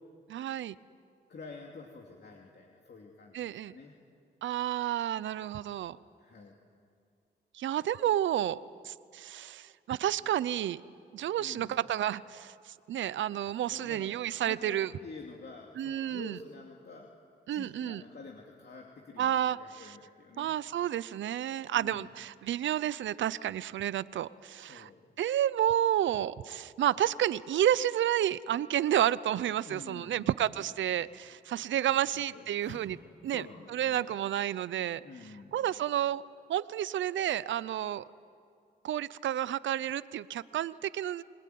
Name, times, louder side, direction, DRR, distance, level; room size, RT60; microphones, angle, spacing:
voice 1, 0.3-0.8 3.3-3.8 4.4-6.0 7.5-8.6 8.8-10.8 11.1-14.9 15.8-16.4 17.5-18.0 19.2-19.9 20.4-24.9 25.2-33.0 33.2-33.4 33.7-35.0 35.5-36.2 36.5-38.0 38.8-41.2, right 11 dB, 90° right, 18 dB, 0.6 m, -30 dB
voice 2, 1.3-3.9 6.2-6.6 11.4-11.8 13.7-14.1 14.4-17.1 17.5-20.5 21.7-22.1 24.7-25.0 29.6-30.3 31.9-32.8 33.3-34.2 35.0-35.6, left 4 dB, 60° left, 0 dB, 2.9 m, -48 dB
27.5 x 20.5 x 9.4 m, 2.3 s
cardioid pair, 60°, 19 cm